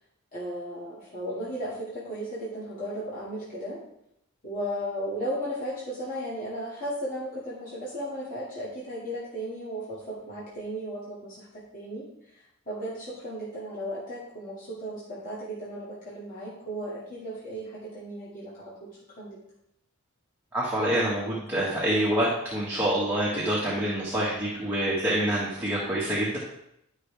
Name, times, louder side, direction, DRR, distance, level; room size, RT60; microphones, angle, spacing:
voice 1, 0.3-3.8 4.4-12.3 12.7-19.4, equal, 35° left, -9 dB, 2.3 m, -35 dB
voice 2, 20.5-26.4, right 1 dB, 10° right, -8 dB, 1.6 m, -26 dB
11.0 x 5.7 x 3.4 m, 0.79 s
head